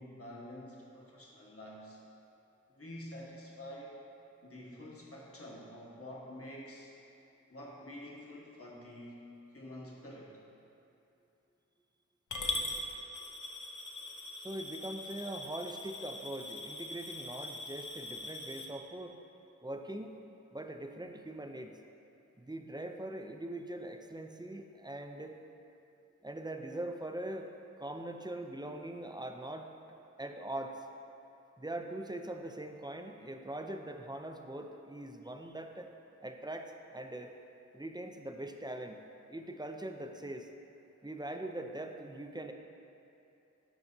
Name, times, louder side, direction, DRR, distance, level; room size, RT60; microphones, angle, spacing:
voice 1, 0.0-2.0 2.7-4.0 4.4-6.9 7.5-10.4, left 1 dB, 50° left, -5 dB, 1.4 m, -48 dB
Coin (dropping) / Glass, 12.3-18.7, left 2 dB, 80° left, 0.7 m, -41 dB
voice 2, 14.4-19.2 19.6-20.1 20.5-21.7 22.4-25.4 26.2-27.5 27.8-29.7 30.2-30.9 31.6-35.9 36.2-37.3 37.7-39.0 39.3-40.5 41.0-42.5, right 1 dB, 15° right, 4 dB, 0.5 m, -42 dB
13.0 x 4.7 x 2.7 m, 2.8 s
wide cardioid pair, 40°, 30 cm